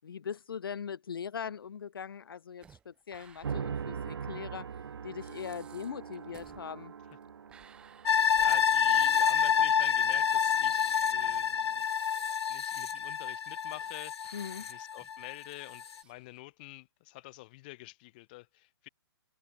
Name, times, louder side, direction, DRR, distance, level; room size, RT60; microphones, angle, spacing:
voice 1, 0.0-4.7 5.0-6.9 14.3-14.7, left 7 dB, 60° left, 1.1 m, -40 dB
sound 1, 2.6-3.8 4.1-4.2 4.8-4.9 5.2-9.9 10.3-10.4 11.0-12.6 13.0-13.1 13.5-14.0 14.2-16.4, right 7 dB, 5° right, 4.3 m, -58 dB
sound 2, 3.4-11.8, right 7 dB, 70° right, 1.1 m, -43 dB
sound 3, 8.1-15.3 15.7-15.8, left 7 dB, 75° left, 0.6 m, -28 dB
voice 2, 8.4-11.5 12.5-18.9, left 22 dB, 20° left, 3.0 m, -47 dB
hypercardioid pair, 180°, 14 cm